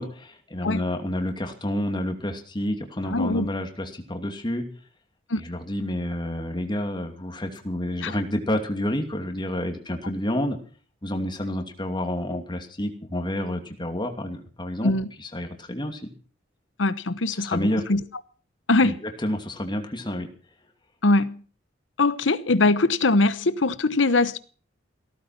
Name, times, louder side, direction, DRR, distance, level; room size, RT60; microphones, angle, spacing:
voice 1, 0.0-4.6 5.4-10.6 11.0-14.9 15.2-16.0 17.4-17.8 18.8-20.3, left 1 dB, 25° left, 2.6 m, -29 dB
voice 2, 3.1-3.5 5.3-5.4 8.0-8.1 14.8-15.1 16.8-18.0 18.7-19.0 21.0-21.4 22.0-24.4, left 2 dB, 85° left, 1.1 m, -22 dB
16.5 x 14.0 x 5.9 m
head